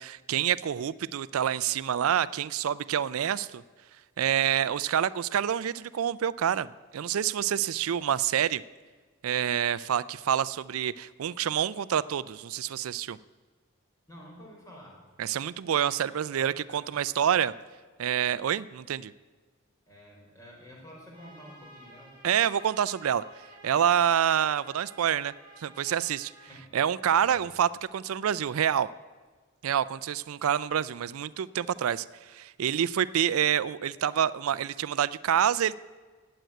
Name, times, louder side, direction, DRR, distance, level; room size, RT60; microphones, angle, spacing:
voice 1, 0.0-3.6 4.2-8.6 9.2-13.2 15.2-17.5 18.0-19.1 22.2-23.2 23.6-25.3 25.6-26.3 26.7-28.9 29.6-35.8, right 9 dB, 85° right, 17 dB, 0.4 m, -27 dB
voice 2, 14.1-15.0 16.1-17.0 19.9-22.2 26.4-26.7 27.2-27.4, equal, 15° left, -3 dB, 4.8 m, -50 dB
Trumpet, 21.1-26.5, right 1 dB, 20° right, 4.6 m, -52 dB
18.5 x 7.8 x 9.1 m, 1.5 s
head